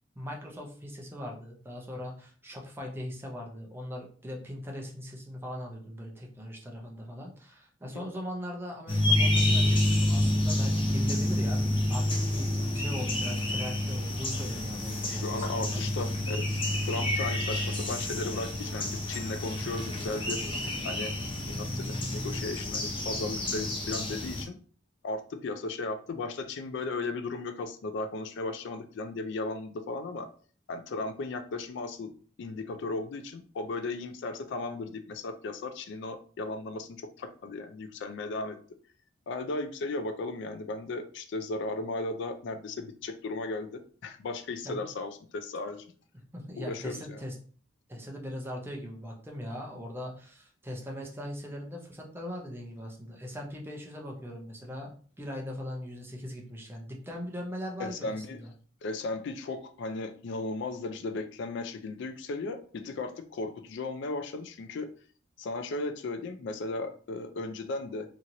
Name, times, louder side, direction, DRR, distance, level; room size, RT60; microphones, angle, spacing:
voice 1, 0.2-11.6 11.9-15.8 44.6-44.8 46.3-47.3 47.9-54.9 55.2-58.5, equal, 10° right, 0 dB, 0.6 m, -40 dB
sound 1, 8.9-24.4, left 1 dB, 25° left, 0.7 m, -29 dB
voice 2, 15.1-20.5 20.8-21.1 21.5-24.6 25.0-30.3 30.7-32.1 32.4-38.6 39.3-45.8 46.6-47.2 57.8-58.4 58.8-64.9 65.4-68.1, left 3 dB, 65° left, 7 dB, 0.3 m, -36 dB
2.8 x 2.8 x 2.5 m, 0.43 s
head